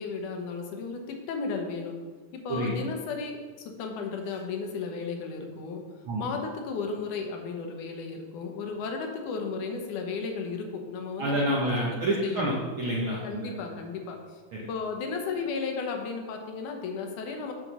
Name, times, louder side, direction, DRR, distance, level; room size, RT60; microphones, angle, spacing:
voice 1, 0.0-2.0 2.3-5.8 6.2-11.4 11.9-12.5 13.2-14.2 14.7-17.5, left 4 dB, 80° left, 3 dB, 2.5 m, -34 dB
voice 2, 11.2-13.6 14.6-14.7, right 1 dB, 65° right, -4 dB, 1.3 m, -28 dB
8.4 x 4.3 x 6.1 m, 1.5 s
omnidirectional pair, 3.5 m